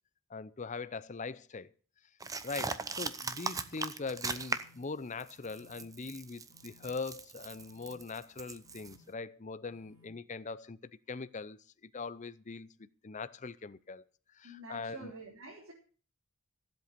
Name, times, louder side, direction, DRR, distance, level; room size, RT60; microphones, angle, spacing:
voice 1, 0.3-1.7 2.4-11.6 11.9-14.0 14.4-15.1, left 4 dB, 35° left, 0.6 m, -41 dB
sound 1, 2.2-4.8 5.2-9.0, right 4 dB, 15° right, 0.7 m, -39 dB
sound 2, 3.3-3.7 4.3-4.8 5.4-5.8 6.5-6.9 7.5-8.0 8.6-9.0 9.7-10.1, left 3 dB, 45° right, 5.2 m, -64 dB
voice 2, 14.4-15.7, right 2 dB, 75° right, 3.6 m, -48 dB
15.0 x 8.0 x 6.7 m
head